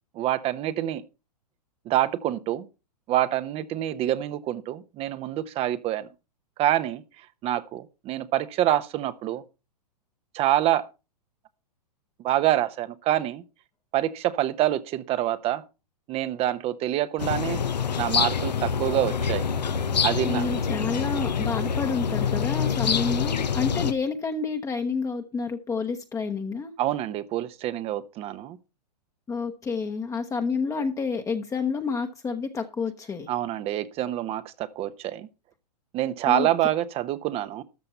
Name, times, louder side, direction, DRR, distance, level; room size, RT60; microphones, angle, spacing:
voice 1, 0.1-1.0 1.9-2.6 3.1-6.1 6.6-7.0 7.4-9.4 10.3-10.9 12.2-13.4 13.9-15.6 16.1-17.6 18.0-19.4 20.0-20.5 26.8-28.6 33.3-35.3 35.9-37.6, right 13 dB, 30° right, 0.8 m, -26 dB
sound 1, 17.2-23.9, left 6 dB, 85° left, 0.9 m, -26 dB
voice 2, 20.2-26.7 29.3-33.3 36.3-36.5, left 5 dB, 15° left, 1.0 m, -29 dB
13.5 x 6.7 x 5.5 m
hypercardioid pair, 115°, 21 cm